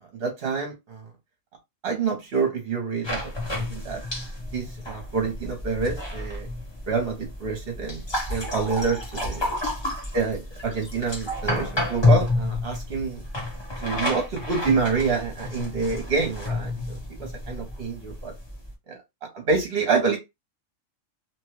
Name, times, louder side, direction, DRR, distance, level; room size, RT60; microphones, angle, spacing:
voice 1, 0.1-1.0 1.8-3.2 3.5-4.0 4.5-6.5 6.9-8.0 8.3-9.5 10.1-13.2 13.8-18.3 18.9-19.0 19.3-20.2, right 4 dB, 50° right, 1.0 m, -27 dB
sound 1, 3.0-18.7, left 2 dB, 20° left, 0.9 m, -29 dB
3.0 x 2.2 x 3.0 m
omnidirectional pair, 1.4 m